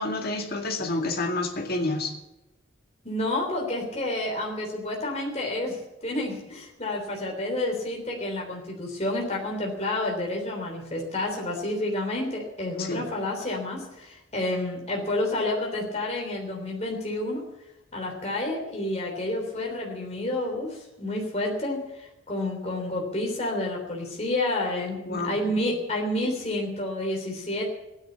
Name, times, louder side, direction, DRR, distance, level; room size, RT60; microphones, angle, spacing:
voice 1, 0.0-2.2 12.8-13.1 25.0-25.4, left 2 dB, 50° left, 4 dB, 2.2 m, -29 dB
voice 2, 3.0-17.4 17.9-27.6, left 1 dB, 35° left, -1 dB, 3.4 m, -29 dB
16.0 x 10.0 x 8.5 m, 0.96 s
head